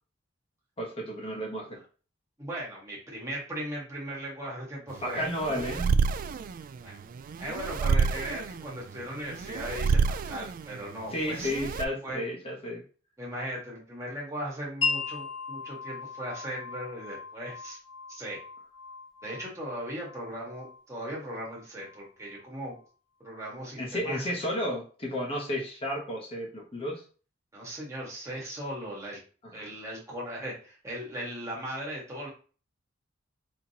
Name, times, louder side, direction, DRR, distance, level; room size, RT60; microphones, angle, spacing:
voice 1, 0.8-1.8 5.0-5.9 11.1-12.8 23.8-27.0 29.4-29.7, equal, 30° left, -2 dB, 1.1 m, -32 dB
voice 2, 2.4-5.3 6.8-6.9 7.4-11.5 12.0-12.2 13.2-17.8 18.1-18.4 19.2-22.8 23.2-24.2 27.5-29.2 29.5-32.3, equal, 15° right, -5 dB, 1.8 m, -38 dB
sound 1, 4.9-11.9, right 5 dB, 45° right, 0.3 m, -29 dB
Wind chime, 14.8-22.5, left 5 dB, 80° left, 1.6 m, -38 dB
4.4 x 3.9 x 2.9 m, 0.38 s
head